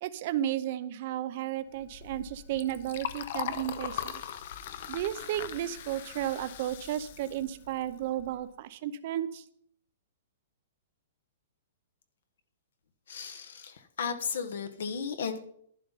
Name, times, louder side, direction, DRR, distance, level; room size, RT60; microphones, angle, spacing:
voice 1, 0.0-4.2 4.9-9.4, right 12 dB, 35° right, 13 dB, 0.6 m, -33 dB
Liquid, 1.8-8.4, left 10 dB, 45° left, 0.8 m, -40 dB
voice 2, 13.1-15.4, left 6 dB, 70° left, 8 dB, 1.3 m, -35 dB
11.5 x 11.0 x 4.1 m, 0.66 s
hypercardioid pair, 175°, 0 cm